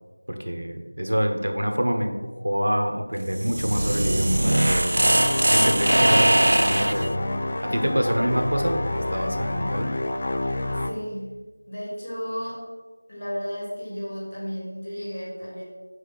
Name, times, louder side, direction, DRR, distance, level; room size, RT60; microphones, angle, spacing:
voice 1, 0.3-5.0 5.5-7.2 7.6-9.9, equal, 85° right, 4 dB, 1.3 m, -26 dB
sound 1, 3.2-7.1, right 1 dB, 50° right, 0.4 m, -21 dB
sound 2, 4.9-10.9, left 1 dB, 20° left, 0.3 m, -28 dB
voice 2, 10.7-11.4 11.7-12.6 13.1-15.6, equal, 35° left, -5 dB, 2.3 m, -33 dB
5.6 x 5.0 x 6.0 m, 1.3 s
figure-of-eight pair, 180°, 0 cm